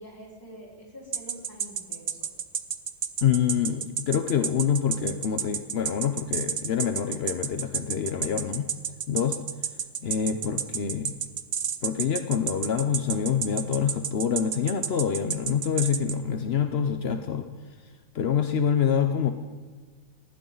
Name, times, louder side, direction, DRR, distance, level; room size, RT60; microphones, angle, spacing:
voice 1, 0.0-2.3, equal, 10° left, -4 dB, 4.7 m, -46 dB
sound 1, 1.1-16.2, right 8 dB, 60° right, 0.7 m, -30 dB
voice 2, 3.2-8.7 9.1-9.4 10.0-11.2 11.8-19.3, left 8 dB, 55° left, 7 dB, 0.7 m, -26 dB
19.5 x 15.0 x 4.0 m, 1.5 s
omnidirectional pair, 2.0 m